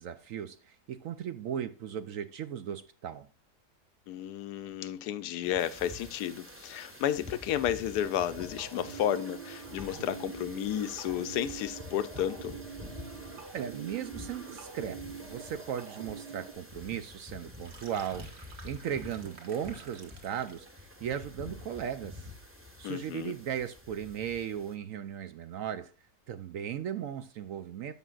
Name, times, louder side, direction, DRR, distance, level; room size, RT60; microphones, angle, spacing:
voice 1, 0.0-3.3 13.5-22.3 22.8-25.9 26.3-27.9, right 9 dB, 70° right, 0.8 m, -37 dB
voice 2, 4.1-12.5 22.8-23.3, left 10 dB, 75° left, 1.1 m, -32 dB
sound 1, 5.4-24.7, left 2 dB, 10° right, 0.9 m, -48 dB
sound 2, 8.0-16.5, right 6 dB, 85° right, 2.0 m, -45 dB
sound 3, 17.4-20.7, right 3 dB, 40° right, 1.5 m, -52 dB
13.5 x 5.6 x 2.4 m
omnidirectional pair, 1.8 m